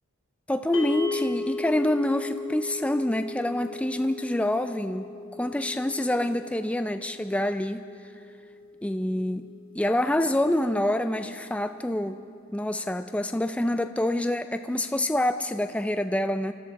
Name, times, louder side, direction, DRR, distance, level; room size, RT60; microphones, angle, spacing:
voice 1, 0.5-7.8 8.8-12.2 12.5-16.5, left 1 dB, 5° left, 9 dB, 0.3 m, -27 dB
sound 1, 0.7-11.0, left 3 dB, 70° left, 1.2 m, -38 dB
25.5 x 13.0 x 4.1 m, 2.3 s
head